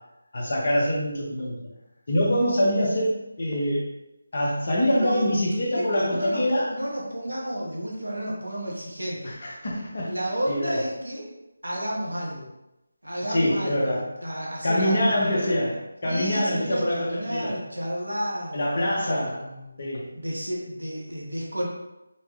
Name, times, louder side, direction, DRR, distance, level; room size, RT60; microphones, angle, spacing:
voice 1, 0.3-1.6 2.1-3.9 4.3-6.7 9.2-10.2 10.5-10.8 13.3-14.0 14.6-17.5 18.5-19.4 19.8-20.1, equal, 50° left, -4 dB, 1.1 m, -25 dB
voice 2, 5.0-5.3 5.7-9.3 10.0-11.3 11.6-12.5 13.0-15.1 16.0-18.6 19.0-19.8 20.1-21.7, equal, 90° right, -3 dB, 1.3 m, -31 dB
4.5 x 2.3 x 3.0 m, 0.92 s
figure-of-eight pair, 160°, 0 cm